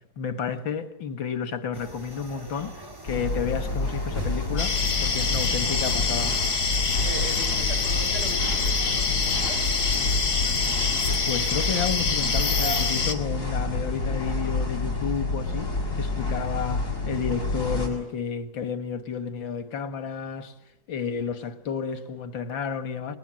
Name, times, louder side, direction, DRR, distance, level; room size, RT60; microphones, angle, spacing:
voice 1, 0.2-6.4 11.2-20.5 20.9-23.2, left 6 dB, 90° left, 2.5 m, -31 dB
sound 1, 1.7-13.0, right 1 dB, 10° right, 2.8 m, -41 dB
sound 2, 3.1-17.9, left 2 dB, 40° left, 7.5 m, -29 dB
sound 3, 4.6-13.1, left 4 dB, 65° left, 3.7 m, -26 dB
voice 2, 6.8-9.9, right 2 dB, 60° right, 6.0 m, -39 dB
30.0 x 21.5 x 7.7 m
omnidirectional pair, 2.0 m